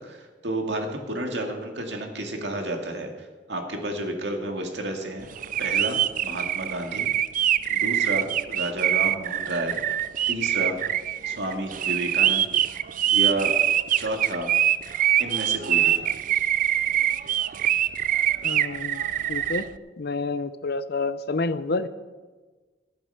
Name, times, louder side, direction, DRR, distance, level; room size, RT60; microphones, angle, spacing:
voice 1, 0.0-3.1 3.5-5.3 5.6-7.1 7.7-9.8 10.3-10.8 11.3-12.5 13.1-13.6 14.0-14.5 15.2-16.0, right 1 dB, 75° right, 3 dB, 2.1 m, -31 dB
sound 1, 5.4-19.6, right 11 dB, 50° right, 0.4 m, -24 dB
voice 2, 18.4-19.0 19.3-19.7 20.0-21.9, left 3 dB, 60° left, 14 dB, 0.6 m, -28 dB
14.0 x 8.8 x 6.8 m, 1.3 s
head